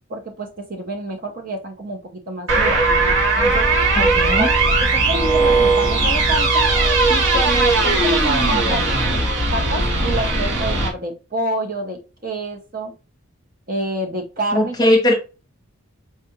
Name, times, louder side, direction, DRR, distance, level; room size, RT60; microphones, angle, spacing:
voice 1, 0.1-2.8 3.4-3.7 4.1-4.5 4.8-6.7 7.1-8.9 9.5-12.9 13.7-14.8, right 1 dB, 40° right, 2 dB, 0.6 m, -27 dB
sound 1, 2.5-10.9, right 3 dB, 55° right, 1.1 m, -18 dB
voice 2, 4.0-4.5 14.5-15.1, left 1 dB, 20° left, 1 dB, 0.9 m, -18 dB
4.4 x 2.4 x 2.8 m, 0.31 s
head